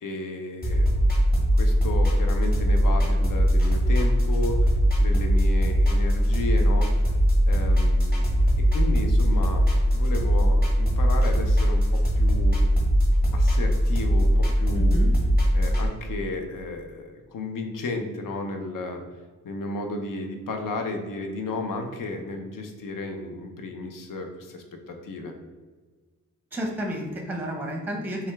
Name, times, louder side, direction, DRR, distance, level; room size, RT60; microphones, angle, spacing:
voice 1, 0.0-0.9 1.5-4.7 5.0-7.1 7.5-8.3 8.7-9.7 9.9-12.6 13.3-15.0 15.5-19.0 19.4-25.3, left 2 dB, 70° left, 4 dB, 0.7 m, -33 dB
sound 1, 0.6-15.9, equal, 25° left, 1.2 m, -21 dB
voice 2, 14.7-15.1 26.5-28.3, equal, 5° right, 1 dB, 0.6 m, -31 dB
6.0 x 2.3 x 3.4 m, 1.4 s
wide cardioid pair, 150°, 33 cm